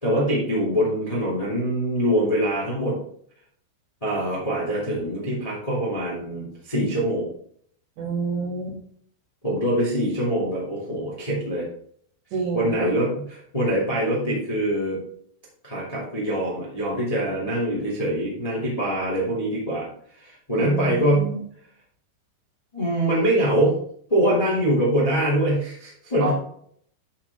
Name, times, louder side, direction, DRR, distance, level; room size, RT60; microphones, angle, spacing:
voice 1, 0.0-3.0 4.0-7.3 9.4-11.7 12.5-15.0 15.6-19.9 20.1-21.3 22.7-23.8 24.1-26.3, right 1 dB, 15° left, -6 dB, 1.2 m, -24 dB
voice 2, 8.0-8.8 12.3-13.0 20.6-21.4 26.2-26.3, right 3 dB, 65° right, -3 dB, 4.1 m, -29 dB
11.0 x 4.9 x 3.6 m, 0.63 s
omnidirectional pair, 5.7 m